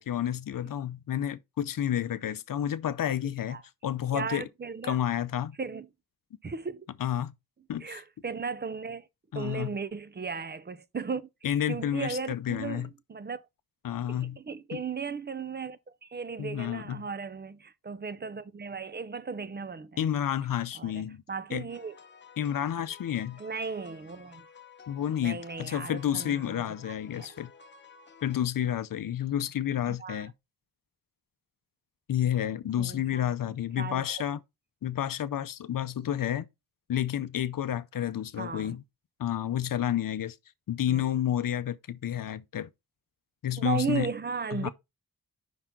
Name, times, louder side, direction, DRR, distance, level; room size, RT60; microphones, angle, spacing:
voice 1, 0.0-4.5 4.8-5.6 7.0-7.3 7.7-8.0 9.3-9.7 11.4-12.9 13.8-14.4 14.7-14.8 16.4-17.0 20.0-21.2 21.5-21.7 22.4-23.4 24.9-27.5 28.2-30.3 32.1-34.4 34.8-36.5 36.9-38.8 39.2-40.4 40.7-42.7 43.4-44.1 44.5-44.7, left 10 dB, 70° left, 0.6 m, -30 dB
voice 2, 4.1-5.0 5.6-5.9 6.4-6.9 7.8-9.1 9.3-11.3 11.7-13.4 14.1-20.0 20.7-22.0 23.4-24.5 25.2-27.3 29.9-30.3 32.8-33.3 33.8-34.2 38.4-38.8 40.9-41.1 43.6-44.7, right 5 dB, 30° right, 0.4 m, -36 dB
sound 1, 21.7-28.5, left 6 dB, 30° left, 0.7 m, -53 dB
5.5 x 3.7 x 5.8 m
wide cardioid pair, 125°, 35 cm